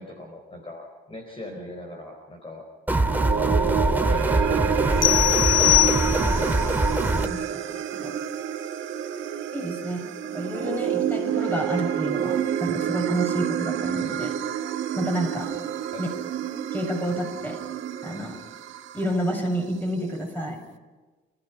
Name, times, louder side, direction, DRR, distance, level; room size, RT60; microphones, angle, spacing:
voice 1, 0.0-2.6 3.3-5.2 15.9-16.1, left 1 dB, 30° left, 2 dB, 4.3 m, -39 dB
sound 1, 2.9-7.3, right 2 dB, 10° right, 2.0 m, -23 dB
sound 2, 3.0-19.4, right 9 dB, 80° right, 1.8 m, -29 dB
sound 3, 5.0-6.5, left 22 dB, 80° left, 0.8 m, -21 dB
voice 2, 5.6-6.5 7.2-8.2 9.5-14.3 14.9-15.5 16.0-16.1 16.7-17.6 18.0-18.4 18.9-20.6, equal, 10° left, 3 dB, 7.0 m, -30 dB
29.0 x 16.0 x 5.9 m, 1.3 s
cardioid pair, 90°, 20 cm